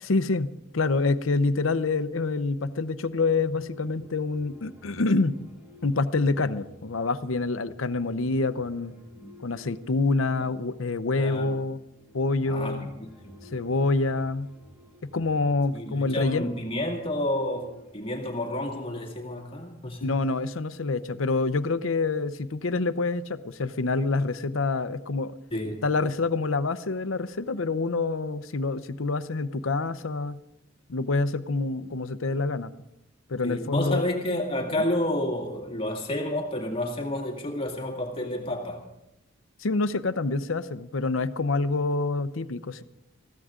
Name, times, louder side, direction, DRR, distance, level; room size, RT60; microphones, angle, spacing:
voice 1, 0.0-0.5 0.7-5.4 5.8-8.9 9.4-11.8 12.1-12.9 13.5-14.5 15.0-16.5 20.0-25.3 25.8-30.4 30.9-32.7 33.3-34.0 34.7-34.8 39.6-42.8, left 3 dB, 80° left, 13 dB, 0.7 m, -26 dB
sound 1, 3.2-17.9, left 1 dB, 10° right, 1.9 m, -53 dB
voice 2, 11.1-11.6 12.5-13.3 15.7-20.1 25.5-25.8 33.4-38.8, left 1 dB, 30° left, 1 dB, 2.2 m, -30 dB
21.0 x 15.5 x 3.8 m, 0.87 s
head